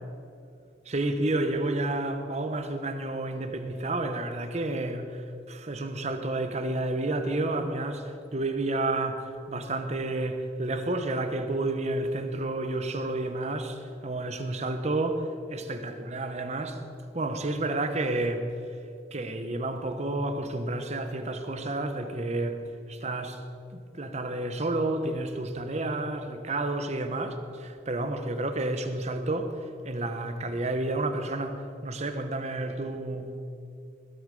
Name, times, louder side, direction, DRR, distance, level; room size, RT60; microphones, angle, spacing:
voice 1, 0.9-16.8 17.1-18.5 19.1-22.6 22.9-23.4 23.7-29.6 29.8-33.4, right 2 dB, 40° right, 1.0 m, -30 dB
19.5 x 8.2 x 5.3 m
head